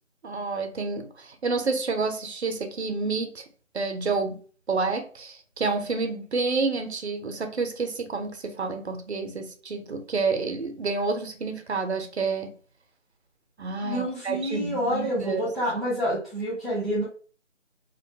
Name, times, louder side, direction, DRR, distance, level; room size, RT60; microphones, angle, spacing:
voice 1, 0.2-3.4 3.7-4.4 4.7-12.5 13.6-15.4, right 4 dB, 60° right, 0.6 m, -29 dB
voice 2, 13.8-17.1, equal, ahead, 0.5 m, -28 dB
2.5 x 2.2 x 2.7 m
figure-of-eight pair, 165°, 39 cm